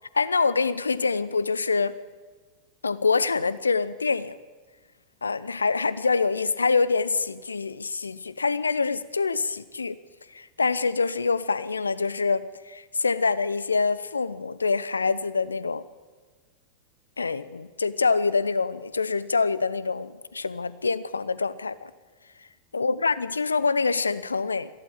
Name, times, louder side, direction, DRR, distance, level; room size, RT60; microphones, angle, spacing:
voice 1, 0.1-1.9 2.8-4.4 5.2-10.0 10.3-15.8 17.2-21.9 22.7-24.7, left 4 dB, 80° left, 17 dB, 0.8 m, -25 dB
22.5 x 15.5 x 8.8 m, 1.4 s
figure-of-eight pair, 90°, 0 cm